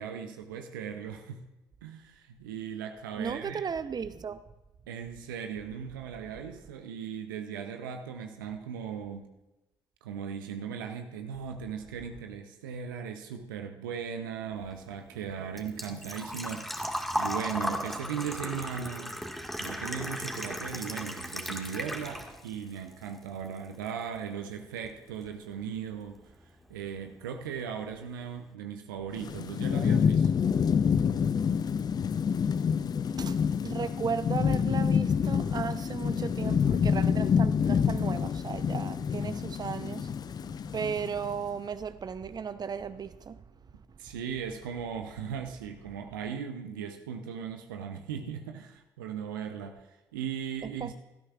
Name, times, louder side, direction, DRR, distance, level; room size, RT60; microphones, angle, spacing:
voice 1, 0.0-1.4 1.8-3.6 4.9-9.3 10.0-19.1 19.6-30.4 44.0-50.9, right 7 dB, 80° right, 0.7 m, -38 dB
voice 2, 3.2-4.4 33.2-40.1 40.7-43.4 50.8-50.9, right 6 dB, 40° right, 0.7 m, -35 dB
Engine / Trickle dribble / Fill (with liquid), 14.6-22.6 22.9-23.9 24.2-24.3 26.2-26.3 26.4-26.8 27.2-27.3 27.5-27.6, equal, ahead, 1.7 m, -36 dB
Thunderstorm / Rain, 29.2-41.4, left 7 dB, 40° left, 0.4 m, -27 dB
17.0 x 13.0 x 2.4 m
figure-of-eight pair, 40°, 11 cm